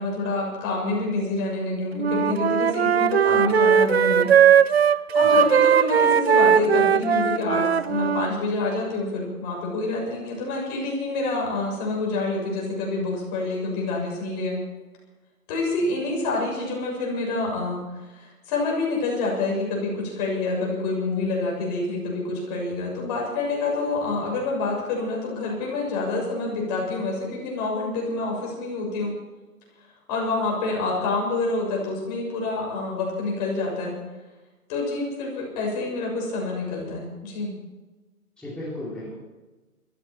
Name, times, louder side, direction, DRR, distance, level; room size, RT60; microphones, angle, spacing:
voice 1, 0.0-4.3 5.1-14.6 15.5-17.8 18.1-29.1 30.1-34.0 34.7-37.5, left 3 dB, 25° left, -2 dB, 6.9 m, -27 dB
Wind instrument woodwind instrument, 2.0-8.3, right 8 dB, 45° right, 0.5 m, -19 dB
voice 2, 38.4-39.2, left 1 dB, ahead, -11 dB, 3.7 m, -35 dB
22.0 x 14.5 x 4.5 m, 1.2 s
hypercardioid pair, 150°, 46 cm